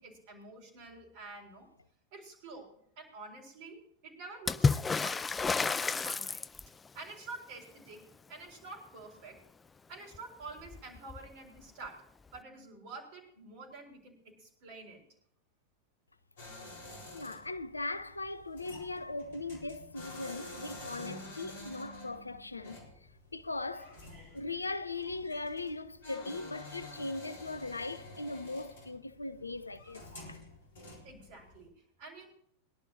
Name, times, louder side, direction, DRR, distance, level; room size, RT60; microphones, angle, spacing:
voice 1, 0.0-1.7 2.1-6.5 6.9-9.4 9.9-12.0 12.3-15.0 23.7-24.4 31.0-32.3, right 3 dB, 45° right, 4.4 m, -49 dB
Water / Splash splatter, 4.5-6.9 10.1-10.2 10.5-11.3 12.3-12.4, left 4 dB, 15° left, 0.4 m, -30 dB
sound 1, 16.4-31.7, left 2 dB, 60° left, 4.2 m, -49 dB
voice 2, 17.1-22.8 23.3-24.0 24.3-30.4, left 2 dB, 80° left, 0.6 m, -39 dB
22.5 x 11.5 x 2.6 m
figure-of-eight pair, 90°, 0 cm